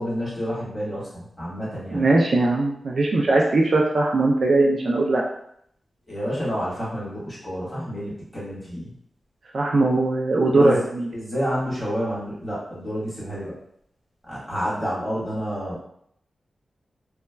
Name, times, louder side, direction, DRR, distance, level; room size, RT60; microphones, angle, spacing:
voice 1, 0.0-2.1 6.1-8.9 10.5-10.8 11.1-13.5 14.3-15.8, equal, ahead, -8 dB, 1.2 m, -29 dB
voice 2, 1.9-5.2 9.5-11.1, right 2 dB, 60° right, -2 dB, 0.3 m, -20 dB
2.2 x 2.1 x 3.2 m, 0.70 s
wide cardioid pair, 140°, 0 cm